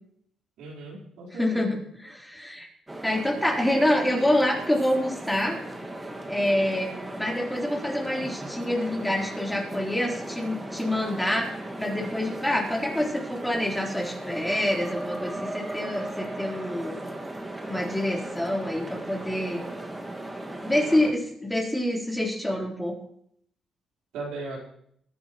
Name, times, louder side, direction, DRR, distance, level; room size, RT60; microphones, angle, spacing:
voice 1, 0.6-1.7 24.1-24.6, right 2 dB, 90° right, -3 dB, 4.1 m, -37 dB
voice 2, 1.4-2.7 3.0-5.6 6.3-6.9 7.2-17.0 17.7-19.6 20.6-23.0, left 1 dB, 5° left, -1 dB, 3.7 m, -27 dB
sound 1, 2.9-21.1, right 1 dB, 15° right, 1.8 m, -37 dB
21.5 x 10.5 x 3.1 m, 0.67 s
cardioid pair, 90°, 0 cm